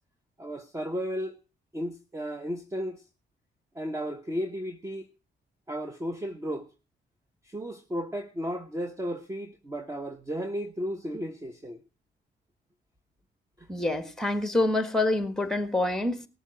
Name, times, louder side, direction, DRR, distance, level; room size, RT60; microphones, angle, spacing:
voice 1, 0.4-1.4 1.7-3.1 3.7-5.1 5.7-6.7 7.4-11.8 13.6-13.7, equal, 15° right, 1.0 m, -34 dB
voice 2, 13.7-16.3, left 2 dB, ahead, 1.6 m, -26 dB
18.5 x 7.2 x 5.1 m
cardioid pair, 90°, 20 cm